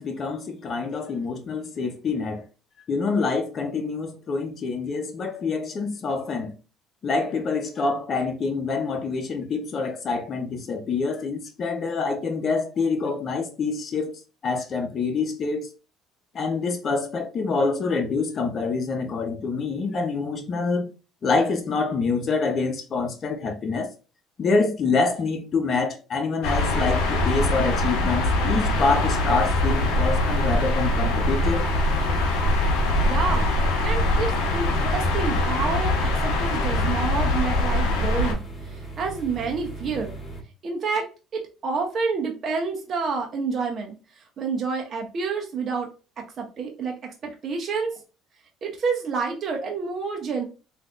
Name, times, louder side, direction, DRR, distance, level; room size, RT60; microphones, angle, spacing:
voice 1, 0.0-2.4 2.9-6.5 7.0-15.7 16.3-20.9 21.2-23.9 24.4-31.7, left 4 dB, 45° left, 0.8 m, -26 dB
sound 1, 26.4-38.3, left 1 dB, 80° left, 0.8 m, -23 dB
sound 2, 28.7-40.4, right 3 dB, 30° left, 1.7 m, -38 dB
voice 2, 33.0-33.5 33.8-40.2 40.6-41.1 41.3-45.9 46.2-48.0 48.6-50.4, right 5 dB, 50° right, 0.7 m, -29 dB
3.4 x 2.5 x 2.4 m
supercardioid pair, 80°, 0 cm